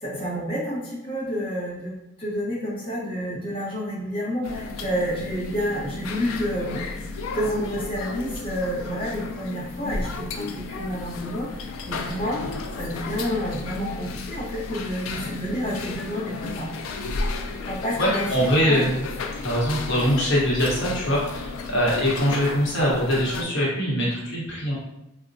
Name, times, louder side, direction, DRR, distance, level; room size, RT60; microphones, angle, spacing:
voice 1, 0.0-6.8 7.3-11.5 11.9-12.4 12.7-16.7 17.7-18.8, equal, 25° left, -8 dB, 0.8 m, -29 dB
sound 1, 4.4-23.4, left 3 dB, 75° left, 0.3 m, -33 dB
voice 2, 18.0-19.0 19.4-24.8, equal, 60° left, -5 dB, 0.9 m, -23 dB
4.0 x 2.1 x 2.6 m, 0.89 s
head